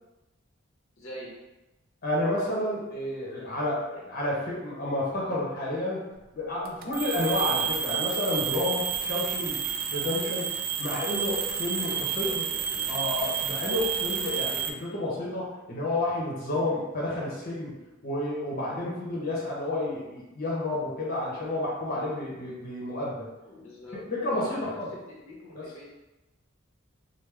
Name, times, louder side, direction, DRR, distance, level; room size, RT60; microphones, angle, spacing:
voice 1, 1.0-1.4 4.0-4.1 11.9-12.8 16.5-16.8 23.5-24.0 24.3-25.9, equal, 80° left, -4 dB, 0.9 m, -44 dB
voice 2, 2.0-6.0 6.3-9.6 9.9-12.4 12.9-17.8 18.0-23.3 23.9-24.9 25.5-25.6, left 1 dB, 50° left, -6 dB, 0.8 m, -30 dB
sound 1, 6.6-14.7, right 8 dB, 45° right, 0.3 m, -30 dB
3.4 x 2.1 x 3.2 m, 1.0 s
head